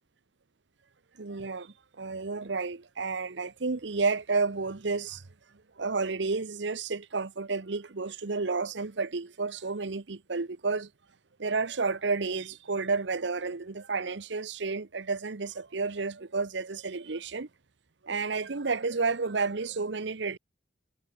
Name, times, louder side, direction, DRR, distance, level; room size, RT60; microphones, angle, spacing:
voice 1, 1.2-5.2 5.8-10.9 11.4-17.5 18.0-20.4, right 4 dB, 65° right, 0.9 m, -31 dB
head